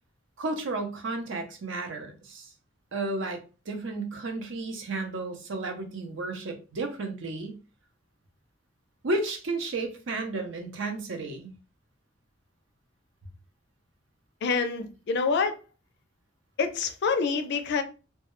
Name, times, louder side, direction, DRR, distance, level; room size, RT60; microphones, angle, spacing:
voice 1, 0.4-2.5 2.9-3.4 3.7-7.6 9.0-11.5, right 2 dB, 65° right, 0.6 m, -32 dB
voice 2, 14.4-15.6 16.6-17.8, left 5 dB, 60° left, 0.4 m, -26 dB
2.2 x 2.0 x 3.0 m
head